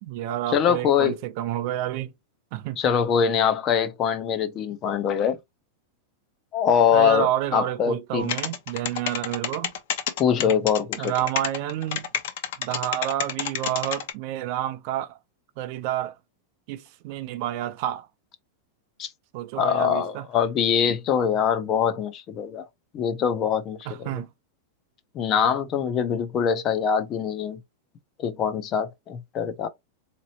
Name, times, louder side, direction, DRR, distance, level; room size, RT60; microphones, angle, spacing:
voice 1, 0.0-2.1 2.5-2.8 6.9-9.7 11.0-12.1 12.6-15.2 15.6-16.2 16.7-18.1 19.3-20.2 23.9-24.3, right 13 dB, 50° right, 0.6 m, -29 dB
voice 2, 0.5-1.2 2.8-5.4 6.5-8.3 10.2-11.1 19.0-19.1 19.6-22.7 22.9-24.1 25.1-27.6 28.2-29.7, left 7 dB, 30° left, 0.6 m, -23 dB
sound 1, 8.2-14.1, left 9 dB, 60° left, 0.9 m, -28 dB
4.0 x 2.9 x 2.8 m
supercardioid pair, 155°, 0 cm